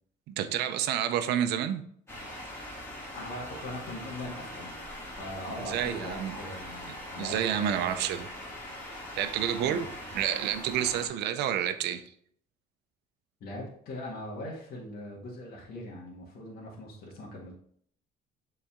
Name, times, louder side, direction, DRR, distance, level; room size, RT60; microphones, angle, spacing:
voice 1, 0.3-1.8 5.6-6.3 7.2-8.3 9.2-9.9 10.1-12.0, right 10 dB, 80° right, 0.7 m, -29 dB
sound 1, 2.1-11.1, left 1 dB, 15° left, 2.5 m, -42 dB
voice 2, 3.2-4.7 5.0-8.2 9.6-10.0 10.8-11.1 13.4-17.5, left 1 dB, 60° left, 1.9 m, -41 dB
7.2 x 4.1 x 3.7 m
cardioid pair, 110°, 17 cm